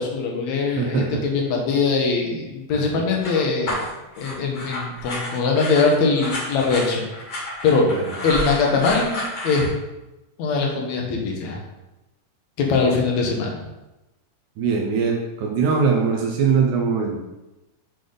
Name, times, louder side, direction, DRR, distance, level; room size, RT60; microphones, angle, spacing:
voice 1, 0.0-3.9 4.2-7.0 7.3-7.8 8.2-9.7 10.4-11.6 12.6-13.6, left 4 dB, 70° left, 0 dB, 2.0 m, -22 dB
voice 2, 0.8-1.2 2.7-3.0 7.9-8.1 14.6-17.2, right 5 dB, 75° right, 1 dB, 2.0 m, -22 dB
sound 1, 3.2-9.7, left 1 dB, 45° left, 2.2 m, -30 dB
7.7 x 3.4 x 3.8 m, 1.0 s
omnidirectional pair, 3.8 m